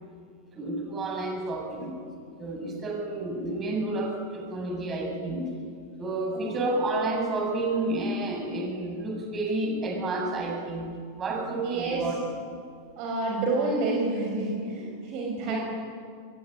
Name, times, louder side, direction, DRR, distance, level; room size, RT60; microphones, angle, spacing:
voice 1, 0.5-2.0 2.4-5.5 6.0-12.2 15.4-15.6, right 2 dB, 25° right, 1 dB, 7.9 m, -30 dB
voice 2, 11.6-12.1 13.0-15.6, right 2 dB, 40° right, 0 dB, 6.0 m, -29 dB
24.0 x 22.5 x 10.0 m, 2.2 s
figure-of-eight pair, 90°, 0 cm